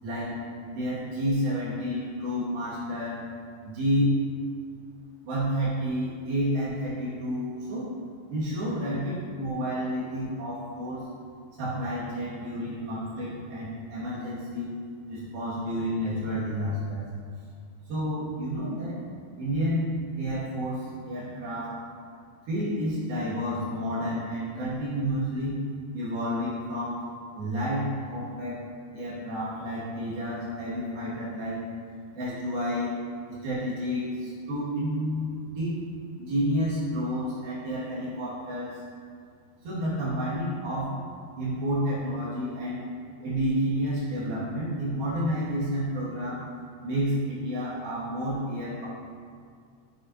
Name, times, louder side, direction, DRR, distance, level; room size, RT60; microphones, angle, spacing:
voice 1, 0.0-0.4 0.7-3.2 3.6-4.2 5.2-7.9 8.3-11.1 11.6-14.7 15.1-17.1 17.9-19.0 19.4-19.9 20.2-21.7 22.5-25.6 25.9-27.1 27.4-28.6 28.9-31.6 32.1-33.0 33.3-35.8 36.2-38.8 39.6-41.0 41.4-42.8 43.2-46.4 46.8-48.9, equal, 75° right, -9 dB, 4.2 m, -30 dB
8.6 x 8.2 x 2.9 m, 2.1 s
omnidirectional pair, 4.2 m